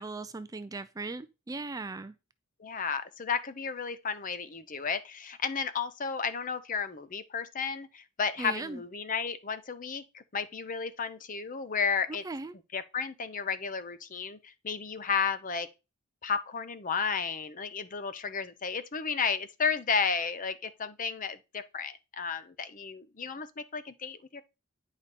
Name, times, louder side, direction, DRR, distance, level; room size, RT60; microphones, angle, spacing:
voice 1, 0.0-2.1 8.4-8.8 12.2-12.5, right 3 dB, 15° right, 0.3 m, -38 dB
voice 2, 2.6-12.2 12.7-15.7 16.2-24.4, left 5 dB, 40° left, 0.7 m, -33 dB
9.6 x 5.1 x 4.2 m
head